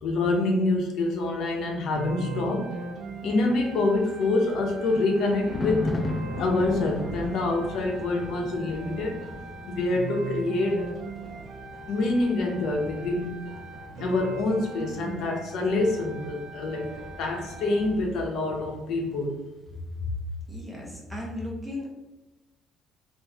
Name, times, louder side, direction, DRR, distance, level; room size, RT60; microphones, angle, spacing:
voice 1, 0.0-2.7 3.2-5.9 6.4-9.2 9.7-10.9 11.9-13.5 14.0-16.8 17.2-19.3, left 2 dB, 70° left, 0 dB, 0.7 m, -26 dB
sound 1, 2.0-18.0, right 4 dB, 70° right, 0.5 m, -40 dB
Thunder, 3.7-18.2 18.5-18.8, left 1 dB, 25° left, 0.5 m, -39 dB
voice 2, 20.5-21.9, left 2 dB, 10° right, -3 dB, 1.0 m, -34 dB
3.0 x 2.5 x 3.4 m, 1.0 s
cardioid pair, 115°, 0 cm